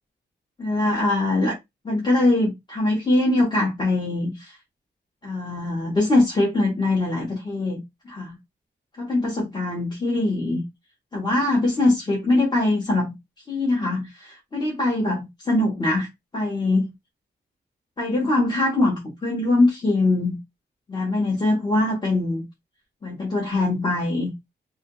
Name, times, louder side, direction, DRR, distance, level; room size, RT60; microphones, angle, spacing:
voice 1, 0.6-1.6 1.8-4.6 5.2-7.8 8.0-8.4 9.0-10.6 11.1-13.1 13.5-16.1 16.3-16.9 18.0-20.4 20.9-22.4 23.0-24.3, left 2 dB, 25° left, 1.1 m, -22 dB
2.8 x 2.6 x 3.7 m
wide cardioid pair, 160°, 19 cm